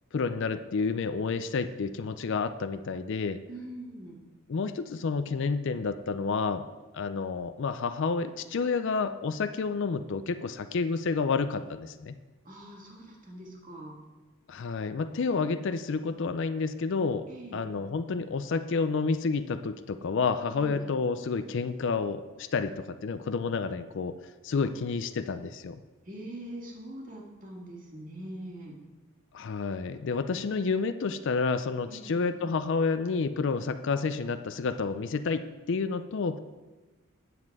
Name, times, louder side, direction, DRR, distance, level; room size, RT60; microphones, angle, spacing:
voice 1, 0.1-3.4 4.5-6.6 6.9-12.2 14.5-17.3 17.5-24.1 24.4-25.8 29.3-36.4, left 4 dB, 55° left, 11 dB, 0.4 m, -30 dB
voice 2, 3.5-4.2 12.4-14.0 17.3-17.7 20.6-20.8 24.5-24.6 26.1-28.7 31.9-32.3, right 1 dB, 35° right, -2 dB, 1.9 m, -43 dB
9.5 x 7.4 x 4.8 m, 1.2 s
head